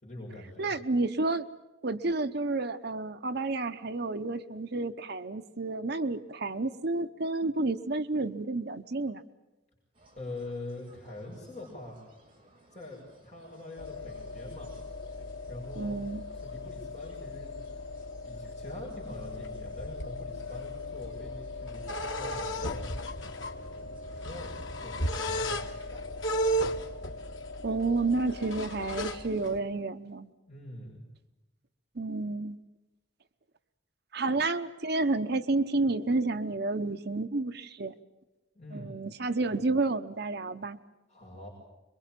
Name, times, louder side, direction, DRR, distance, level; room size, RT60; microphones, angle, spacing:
voice 1, 0.0-0.7 10.2-12.0 12.7-14.7 15.5-16.0 16.3-17.7 18.2-23.2 23.6-26.6 30.5-31.0 38.5-38.9 39.5-39.6 41.1-41.5, left 2 dB, 35° left, -4 dB, 6.7 m, -44 dB
voice 2, 0.6-1.5 1.8-9.2 15.8-16.2 27.6-30.3 32.0-32.6 34.1-37.9 38.7-40.8, right 3 dB, 55° right, 10 dB, 0.9 m, -30 dB
sound 1, 9.9-24.7, right 1 dB, 30° right, 6.8 m, -61 dB
sound 2, 13.8-29.6, equal, 80° left, 1.9 m, -36 dB
26.0 x 23.0 x 7.6 m, 1.0 s
head